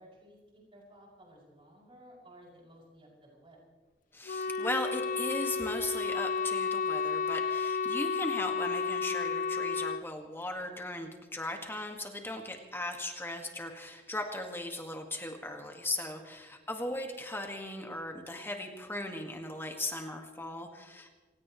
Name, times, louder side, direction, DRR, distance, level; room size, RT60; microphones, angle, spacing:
voice 1, 0.0-3.6 16.5-16.7, equal, 30° right, -3 dB, 6.3 m, -56 dB
voice 2, 4.1-21.1, left 1 dB, 15° left, 3 dB, 1.7 m, -37 dB
Wind instrument woodwind instrument, 4.3-10.0, left 5 dB, 50° left, 0.4 m, -32 dB
27.5 x 17.0 x 3.1 m, 1.4 s
head